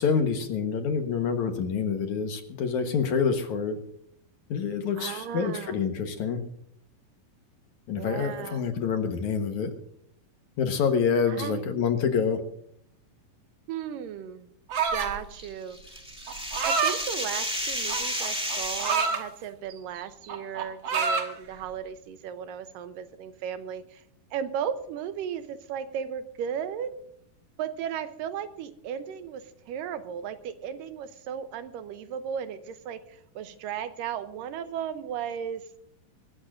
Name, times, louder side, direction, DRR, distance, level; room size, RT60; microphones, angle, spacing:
voice 1, 0.0-3.8 4.5-6.4 7.9-9.7 10.6-12.4, left 6 dB, 65° left, 5 dB, 2.4 m, -27 dB
voice 2, 5.0-5.8 8.0-8.6 11.3-11.6 13.7-14.5 14.9-15.8 16.6-24.0 24.3-26.9 27.6-35.6, right 8 dB, 80° right, 10 dB, 2.3 m, -35 dB
sound 1, 14.7-15.2 16.3-17.0 17.9-19.2 19.7-20.0 20.2-21.3, right 5 dB, 60° right, 1.3 m, -27 dB
sound 2, 15.4-19.2, equal, 5° right, 0.4 m, -32 dB
24.5 x 14.5 x 2.6 m, 0.69 s
omnidirectional pair, 4.1 m